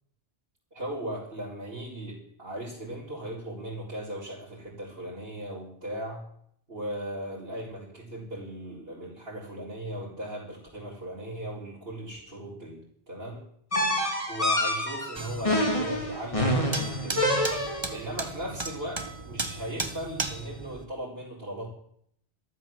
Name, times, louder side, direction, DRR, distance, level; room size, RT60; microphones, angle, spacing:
voice 1, 0.7-6.3 6.7-12.8 13.1-13.4 14.3-17.4 17.9-21.7, right 1 dB, 70° right, -8 dB, 5.2 m, -38 dB
sound 1, 13.7-18.0, left 1 dB, 30° left, 3.3 m, -27 dB
sound 2, 15.2-20.9, right 2 dB, 25° right, 1.4 m, -36 dB
14.0 x 13.5 x 7.5 m, 0.68 s
omnidirectional pair, 1.0 m